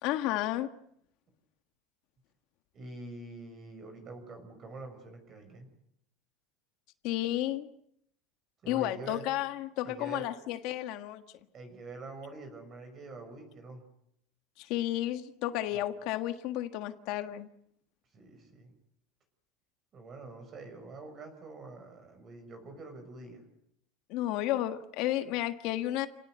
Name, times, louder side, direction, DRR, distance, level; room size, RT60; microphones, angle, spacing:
voice 1, 0.0-0.7 7.0-7.7 8.7-11.2 14.6-17.5 24.1-26.1, left 14 dB, 55° left, 9 dB, 1.6 m, -32 dB
voice 2, 2.7-5.7 8.6-9.2 9.8-10.3 11.5-13.8 15.7-15.8 18.1-18.7 19.9-23.4, right 3 dB, 30° right, 6 dB, 6.5 m, -45 dB
29.5 x 18.5 x 8.1 m, 0.74 s
cardioid pair, 155°, 0 cm